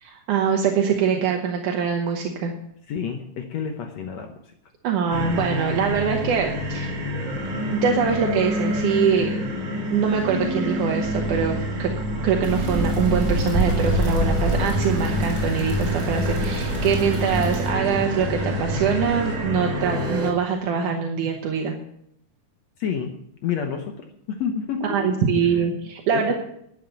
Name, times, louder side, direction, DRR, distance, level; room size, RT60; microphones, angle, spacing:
voice 1, 0.0-2.5 4.8-7.0 7.7-9.3 9.9-11.9 12.2-21.7 24.8-26.4, right 6 dB, 75° right, 1 dB, 2.6 m, -23 dB
voice 2, 2.9-4.4 22.8-23.1 23.4-25.7 26.1-26.4, left 7 dB, 65° left, 4 dB, 2.0 m, -29 dB
sound 1, 5.1-20.3, left 1 dB, 40° right, 2.2 m, -27 dB
sound 2, 12.4-17.7, right 1 dB, 10° right, 3.3 m, -27 dB
sound 3, 13.3-19.4, right 1 dB, 25° left, 6.1 m, -32 dB
11.5 x 9.2 x 6.9 m, 0.74 s
omnidirectional pair, 3.7 m